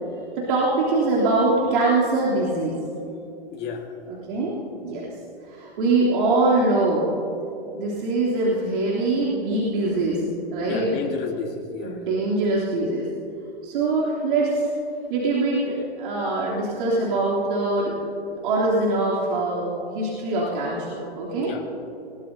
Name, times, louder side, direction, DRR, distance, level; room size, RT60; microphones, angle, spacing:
voice 1, 0.4-2.8 4.1-5.1 5.5-7.1 7.7-10.2 10.5-10.9 11.8-13.1 13.6-14.7 15.1-18.0 18.3-21.5, right 2 dB, 55° right, -6 dB, 3.3 m, -23 dB
voice 2, 3.5-3.9 10.6-12.0 21.4-21.7, left 6 dB, 35° left, 3 dB, 1.7 m, -32 dB
20.5 x 18.5 x 2.8 m, 2.9 s
hypercardioid pair, 115°, 30 cm